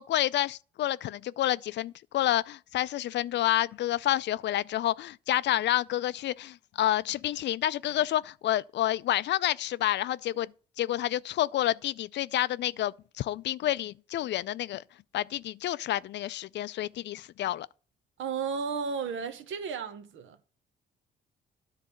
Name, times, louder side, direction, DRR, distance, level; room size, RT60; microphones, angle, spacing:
voice 1, 0.0-10.5 10.8-14.8 15.1-17.7, left 13 dB, 65° left, 0.4 m, -29 dB
voice 2, 18.2-20.4, right 6 dB, 75° right, 1.1 m, -33 dB
10.5 x 4.0 x 7.6 m
cardioid pair, 90°, 20 cm